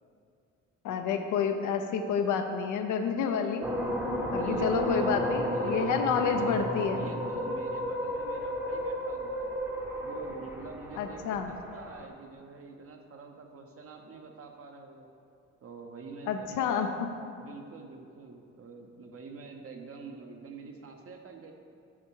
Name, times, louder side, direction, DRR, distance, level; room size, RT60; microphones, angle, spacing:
voice 1, 0.8-3.7 4.3-7.0 11.0-11.5 16.3-16.9, left 6 dB, 85° left, 6 dB, 0.7 m, -29 dB
sound 1, 3.6-12.1, equal, 10° right, 0.8 m, -33 dB
voice 2, 4.3-9.6 10.0-15.1 15.6-17.0 17.4-21.5, right 4 dB, 50° right, 3 dB, 0.9 m, -46 dB
7.3 x 5.8 x 4.6 m, 2.5 s
cardioid pair, 90°, 30 cm